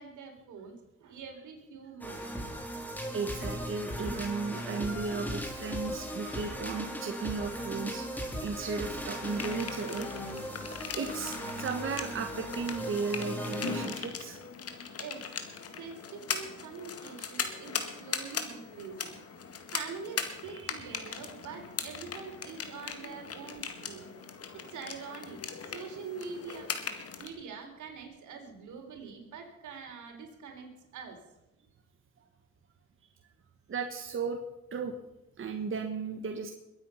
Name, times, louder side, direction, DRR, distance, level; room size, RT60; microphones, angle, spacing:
voice 1, 0.0-2.6 15.0-15.2 15.8-19.2 19.7-24.1 24.5-25.4 25.6-26.7 27.2-31.2, right 5 dB, 75° right, 3 dB, 3.9 m, -44 dB
sound 1, 2.0-14.0, equal, 5° left, 3.3 m, -38 dB
voice 2, 3.1-8.1 8.4-10.1 10.9-14.4 20.4-21.0 33.7-34.4 34.7-34.9 35.4-36.5, right 4 dB, 45° right, 4 dB, 1.6 m, -35 dB
sound 2, 9.2-27.3, left 6 dB, 50° left, 2.0 m, -39 dB
22.0 x 9.0 x 5.8 m, 0.93 s
cardioid pair, 90°, 30 cm